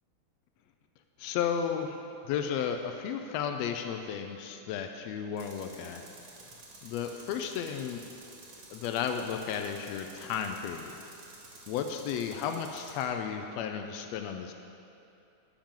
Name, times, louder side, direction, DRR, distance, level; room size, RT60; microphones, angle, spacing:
voice 1, 1.2-6.0 6.8-8.0 8.7-11.0 11.7-14.5, left 7 dB, 90° left, 5 dB, 1.4 m, -33 dB
Tools, 5.4-13.1, right 3 dB, 60° right, 1.0 m, -51 dB
12.0 x 8.9 x 3.7 m, 2.7 s
omnidirectional pair, 3.5 m